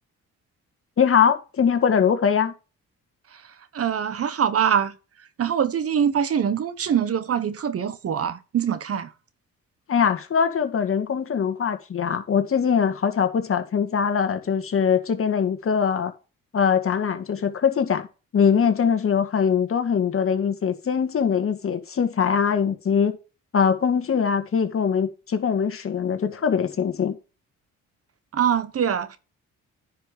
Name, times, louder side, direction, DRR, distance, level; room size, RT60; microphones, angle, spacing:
voice 1, 1.0-2.5 9.9-16.1 16.5-18.1 18.3-23.1 23.5-27.2, left 7 dB, 45° left, 2.0 m, -22 dB
voice 2, 3.7-4.9 5.4-9.1 28.3-29.2, right 8 dB, 50° right, 1.3 m, -23 dB
10.0 x 5.5 x 4.9 m
cardioid pair, 90°, 30 cm